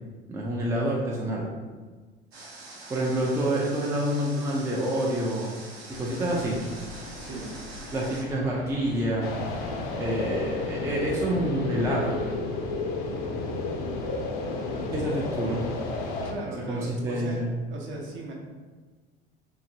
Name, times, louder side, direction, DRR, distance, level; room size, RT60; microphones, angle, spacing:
voice 1, 0.3-1.5 2.9-5.5 5.9-6.6 7.9-9.3 10.0-12.2 14.9-15.6 16.7-17.5, right 1 dB, 10° right, -3 dB, 0.4 m, -27 dB
Water, 2.3-8.2, right 2 dB, 85° right, 0.7 m, -44 dB
sound 1, 5.9-12.4, left 1 dB, 90° left, 0.8 m, -42 dB
voice 2, 7.2-7.5 16.2-17.4 17.7-18.3, right 2 dB, 40° right, -1 dB, 0.7 m, -37 dB
sound 2, 9.2-16.3, left 3 dB, 60° left, 0.6 m, -31 dB
2.9 x 2.8 x 2.6 m, 1.4 s
figure-of-eight pair, 70°, 31 cm